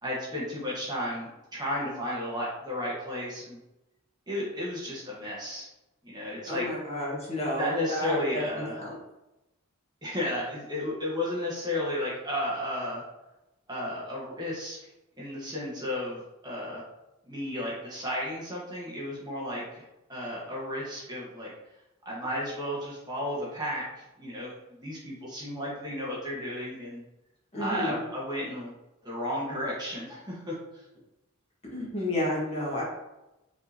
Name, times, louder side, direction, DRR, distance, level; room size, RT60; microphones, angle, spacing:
voice 1, 0.0-3.6 4.3-5.7 6.0-6.7 7.5-8.8 10.0-13.0 13.7-14.8 15.2-16.8 17.2-19.8 20.1-21.5 22.0-27.0 27.6-28.7 29.0-30.6, left 1 dB, 20° right, -6 dB, 1.1 m, -33 dB
voice 2, 6.5-8.9 27.5-28.0 31.7-32.8, left 1 dB, 30° left, -5 dB, 1.3 m, -31 dB
5.1 x 3.7 x 2.7 m, 0.95 s
head